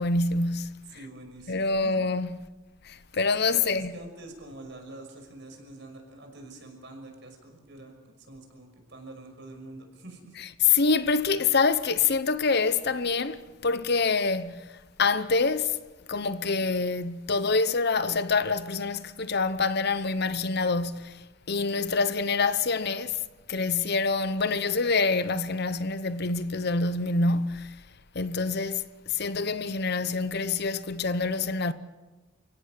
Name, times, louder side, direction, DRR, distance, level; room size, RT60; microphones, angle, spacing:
voice 1, 0.0-0.9 1.5-2.3 2.8-3.9 10.6-14.7 15.0-15.8 16.1-23.2 23.5-27.8 28.1-31.7, left 4 dB, 50° left, 0.8 m, -26 dB
voice 2, 0.9-1.9 3.5-10.4, right 2 dB, 55° right, 5.9 m, -46 dB
29.5 x 17.0 x 7.5 m
head